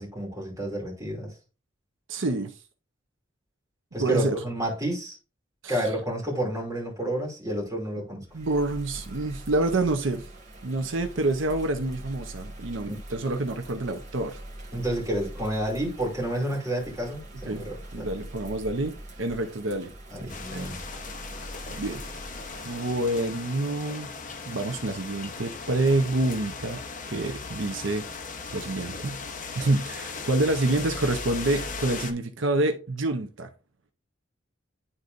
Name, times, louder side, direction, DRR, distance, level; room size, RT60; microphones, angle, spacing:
voice 1, 0.0-1.3 3.9-5.2 5.7-8.2 12.8-13.0 14.7-18.1 20.1-20.8, right 1 dB, 15° right, 2.6 m, -30 dB
voice 2, 2.1-2.5 4.0-4.4 5.6-5.9 8.3-10.3 10.6-14.4 17.5-17.6 17.9-19.9 20.2-20.7 21.8-22.0 22.6-24.1 24.5-26.8 27.1-28.0 28.5-29.2 29.6-33.5, right 2 dB, 80° right, 0.8 m, -27 dB
Bird vocalization bird call bird song / Rain, 8.2-22.9, right 1 dB, 40° right, 1.7 m, -43 dB
sound 1, 20.3-32.1, left 4 dB, 40° left, 0.9 m, -38 dB
11.0 x 4.0 x 2.5 m
head